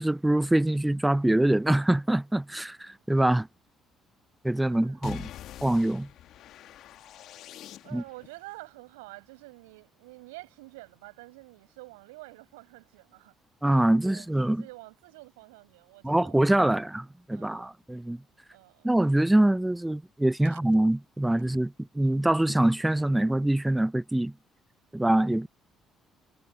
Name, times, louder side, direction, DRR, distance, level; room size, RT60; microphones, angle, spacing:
voice 1, 0.0-3.5 4.4-5.3 5.6-6.1 7.9-8.0 13.6-14.6 16.0-18.2 18.8-24.3 24.9-25.5, right 1 dB, 10° right, 0.6 m, -24 dB
voice 2, 4.6-5.1 7.8-13.3 13.9-16.7 17.3-17.7 18.5-18.9 20.4-20.6, right 23 dB, 75° right, 6.8 m, -48 dB
sound 1, 5.0-8.3, left 12 dB, 60° left, 2.4 m, -45 dB
figure-of-eight pair, 50°, 0 cm